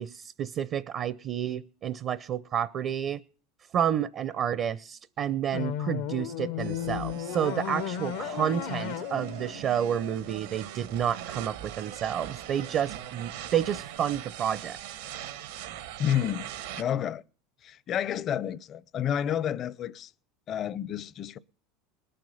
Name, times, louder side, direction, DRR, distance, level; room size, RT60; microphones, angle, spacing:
voice 1, 0.0-3.2 3.7-14.8, right 9 dB, 45° right, 0.6 m, -30 dB
sound 1, 5.5-10.6, left 11 dB, 75° left, 0.9 m, -35 dB
sound 2, 6.6-16.8, right 11 dB, 80° right, 1.4 m, -41 dB
voice 2, 16.0-16.5 16.8-17.2 17.6-20.1 20.5-21.4, left 9 dB, 40° left, 0.6 m, -30 dB
20.0 x 7.8 x 5.7 m
supercardioid pair, 110°, 0 cm